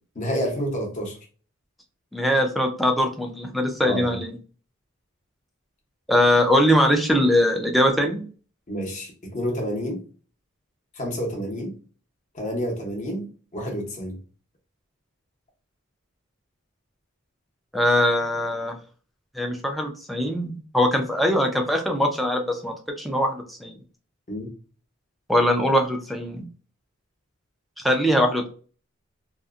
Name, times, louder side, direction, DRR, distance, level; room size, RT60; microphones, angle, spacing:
voice 1, 0.2-1.2 3.8-4.2 8.7-10.0 11.0-11.7 12.3-14.2 24.3-24.5, equal, 35° left, 0.7 m, -29 dB
voice 2, 2.1-4.3 6.1-8.2 17.7-18.8 19.4-23.7 25.3-26.4 27.8-28.5, equal, ahead, 0.3 m, -22 dB
2.6 x 2.1 x 2.4 m
head